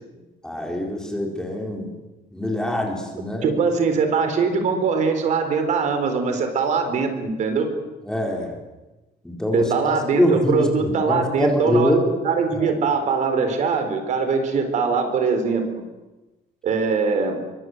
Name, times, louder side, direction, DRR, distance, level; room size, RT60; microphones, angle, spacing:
voice 1, 0.4-1.9 2.3-3.5 8.1-8.5 9.2-9.7 10.2-12.1 12.5-12.7, left 1 dB, 5° left, 1 dB, 4.1 m, -24 dB
voice 2, 3.4-7.7 9.5-12.0 12.2-15.7 16.6-17.4, right 5 dB, 45° right, 7 dB, 4.2 m, -22 dB
27.5 x 24.5 x 8.0 m, 1.1 s
cardioid pair, 175°, 17 cm